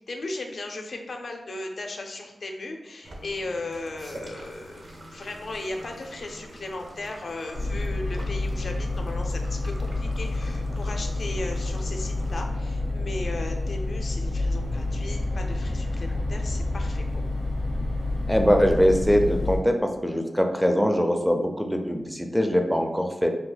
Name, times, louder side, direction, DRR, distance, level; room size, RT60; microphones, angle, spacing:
voice 1, 0.1-17.4, left 2 dB, 65° left, 3 dB, 0.5 m, -36 dB
sound 1, 3.0-12.4, right 1 dB, 55° right, 0.6 m, -45 dB
sound 2, 7.5-19.6, left 2 dB, 80° right, 1.2 m, -28 dB
voice 2, 18.3-23.3, equal, ahead, 4 dB, 0.4 m, -22 dB
2.7 x 2.2 x 3.9 m, 0.98 s
cardioid pair, 55°, 0 cm